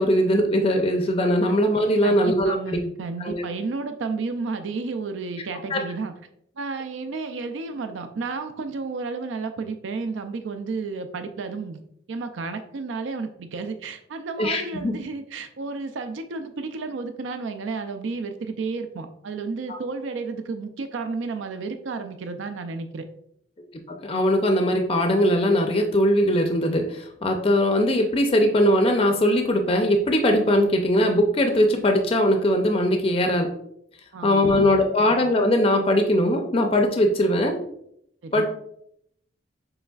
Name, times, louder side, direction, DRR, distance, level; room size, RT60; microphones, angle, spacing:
voice 1, 0.0-2.8 3.2-3.4 5.7-5.8 14.4-14.9 19.7-19.8 24.0-33.5 34.2-37.6 38.3-38.4, left 1 dB, 30° left, 4 dB, 0.4 m, -20 dB
voice 2, 2.0-6.1 6.6-11.8 12.1-23.1 34.1-34.6 38.2-38.4, right 4 dB, 80° right, 8 dB, 0.4 m, -32 dB
6.9 x 3.2 x 2.3 m, 0.73 s
head